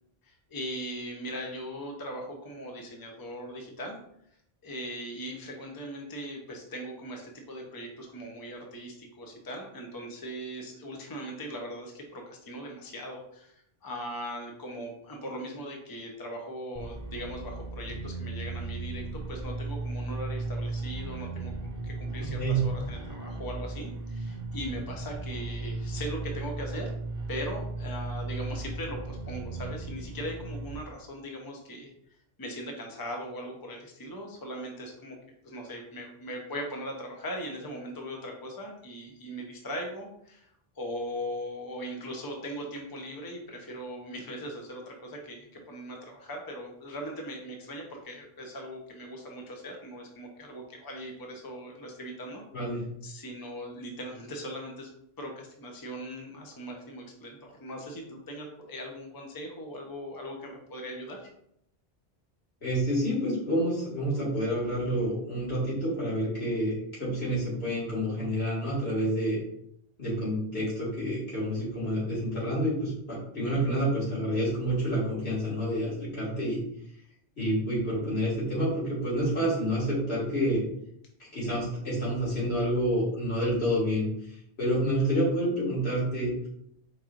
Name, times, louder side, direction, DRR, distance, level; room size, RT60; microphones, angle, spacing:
voice 1, 0.2-4.0 4.6-26.9 27.3-35.2 35.4-52.4 53.0-54.9 55.2-61.3 73.4-73.6 85.1-85.2, equal, 25° left, 1 dB, 0.7 m, -39 dB
sound 1, 16.7-30.8, right 2 dB, 25° right, 0.4 m, -36 dB
voice 2, 62.6-66.7 67.0-69.4 70.0-76.6 77.4-80.6 81.2-84.1 84.6-86.3, equal, 85° left, -8 dB, 2.4 m, -28 dB
4.7 x 4.3 x 2.5 m, 0.72 s
omnidirectional pair, 1.0 m